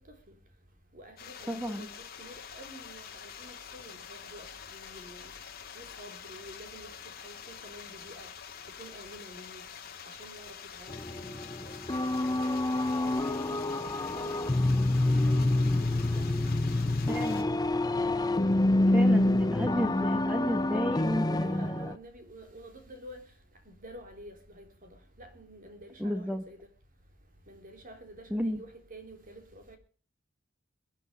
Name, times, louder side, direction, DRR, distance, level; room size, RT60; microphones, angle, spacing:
voice 1, 0.9-5.3 5.7-6.9 7.2-8.3 8.8-9.6 10.0-14.7 15.3-16.6 17.3-17.4 18.9-19.2 21.0-23.2 23.7-26.6 27.5-29.8, right 1 dB, 45° right, 3.4 m, -49 dB
sound 1, 1.2-17.4, left 7 dB, 50° left, 2.6 m, -46 dB
voice 2, 1.5-1.9 17.1-17.5 18.9-21.9 26.0-26.4 28.3-28.6, equal, 5° right, 1.2 m, -32 dB
sound 2, 10.9-22.0, left 2 dB, 20° left, 0.6 m, -27 dB
23.5 x 9.0 x 5.5 m
head